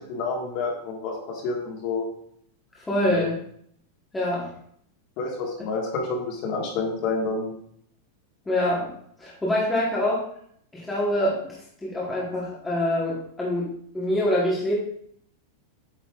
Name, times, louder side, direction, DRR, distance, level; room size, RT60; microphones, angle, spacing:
voice 1, 0.1-2.1 3.1-3.3 5.2-7.5, left 3 dB, 35° left, 0 dB, 1.5 m, -29 dB
voice 2, 2.8-3.4 4.1-4.5 8.5-8.9 9.2-10.2 10.7-13.7 13.9-14.7, left 1 dB, 5° left, -6 dB, 1.2 m, -25 dB
8.1 x 5.6 x 2.4 m, 0.66 s
supercardioid pair, 175°, 0 cm